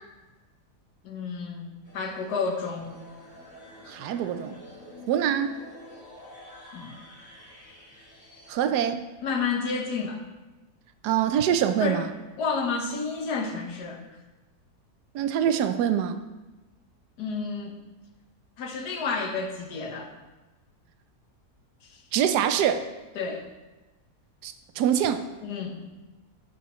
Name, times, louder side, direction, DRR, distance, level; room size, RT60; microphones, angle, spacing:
voice 1, 1.0-1.7 1.9-2.9 6.7-6.9 8.7-8.8 9.2-10.2 11.8-12.0 12.4-14.0 17.2-17.9 18.6-20.1 23.1-23.5 25.4-25.9, left 4 dB, 80° left, 3 dB, 1.6 m, -30 dB
sound 1, 1.8-8.5, left 1 dB, 50° left, 2.2 m, -48 dB
voice 2, 3.9-4.6 5.1-5.5 8.5-9.0 11.0-12.1 15.1-16.2 22.1-22.9 24.4-25.2, right 9 dB, 85° right, 10 dB, 1.2 m, -24 dB
11.0 x 6.8 x 3.1 m, 1.1 s
omnidirectional pair, 1.7 m